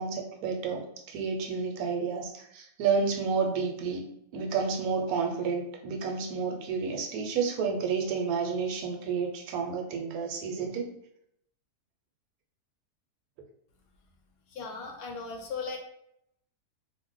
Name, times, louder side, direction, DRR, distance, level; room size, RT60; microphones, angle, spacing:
voice 1, 0.0-4.0 4.3-10.9, right 5 dB, 75° right, 2 dB, 1.0 m, -30 dB
voice 2, 14.5-15.8, left 4 dB, 75° left, 2 dB, 1.0 m, -37 dB
2.5 x 2.1 x 3.7 m, 0.74 s
omnidirectional pair, 1.6 m